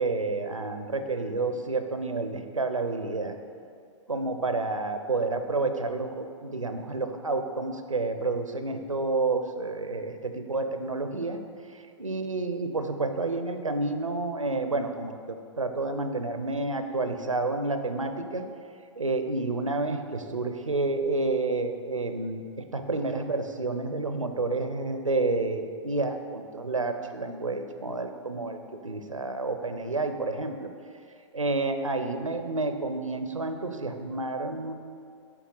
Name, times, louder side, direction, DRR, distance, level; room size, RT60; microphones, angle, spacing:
voice 1, 0.0-3.4 4.1-11.4 11.7-18.4 19.0-30.7 31.3-34.7, right 3 dB, 85° right, 7 dB, 0.7 m, -30 dB
8.4 x 3.3 x 6.3 m, 2.3 s
figure-of-eight pair, 110°, 16 cm